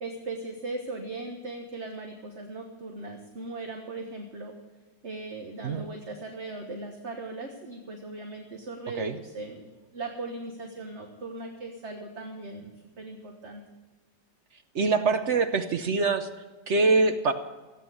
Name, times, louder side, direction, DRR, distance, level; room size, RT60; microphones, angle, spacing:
voice 1, 0.0-4.5 5.0-12.7 13.0-13.6, right 2 dB, 40° right, 2 dB, 1.5 m, -38 dB
voice 2, 14.7-16.3 16.7-17.3, right 3 dB, 55° right, 8 dB, 0.8 m, -24 dB
15.5 x 9.0 x 7.8 m, 1.3 s
omnidirectional pair, 2.1 m